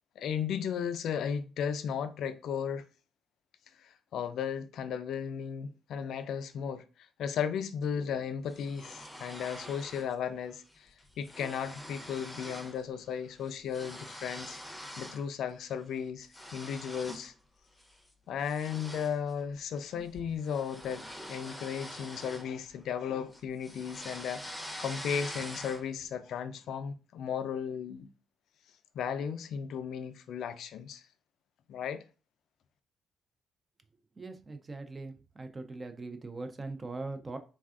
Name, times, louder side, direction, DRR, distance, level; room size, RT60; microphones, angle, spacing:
voice 1, 0.2-2.8 3.8-10.9 11.2-14.6 15.0-17.3 18.3-28.1 28.9-31.0 31.7-32.0, left 7 dB, 75° left, 0.3 m, -35 dB
sound 1, 8.5-10.1 10.5-10.7 11.0-12.8 13.1-15.3 15.7-17.3 17.8-18.0 18.4-23.0 23.3-26.0, equal, 5° left, 0.7 m, -45 dB
voice 2, 34.2-37.4, right 3 dB, 30° right, 0.4 m, -41 dB
3.3 x 2.3 x 2.4 m
cardioid pair, 90°, 0 cm